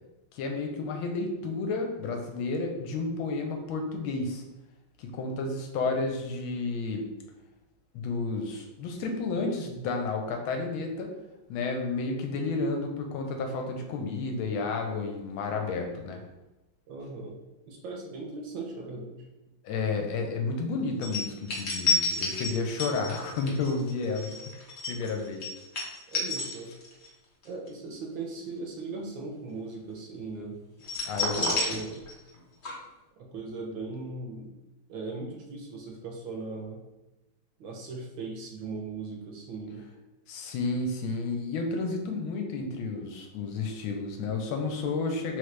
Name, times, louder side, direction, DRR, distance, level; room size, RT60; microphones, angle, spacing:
voice 1, 0.3-4.4 5.0-7.1 7.9-11.1 11.5-16.2 19.6-24.3 24.9-25.4 31.1-31.6 40.3-45.4, left 3 dB, 80° left, 3 dB, 1.4 m, -31 dB
voice 2, 16.9-17.4 17.7-19.2 26.1-26.7 27.4-30.6 31.2-32.0 33.3-34.5 34.9-36.8 37.6-39.8, right 3 dB, 70° right, 0 dB, 1.4 m, -38 dB
sound 1, 21.0-27.1 27.4-27.7 30.8-32.4 32.6-32.7, left 3 dB, 50° left, 0.8 m, -30 dB
3.8 x 3.2 x 3.2 m, 0.99 s
omnidirectional pair, 2.3 m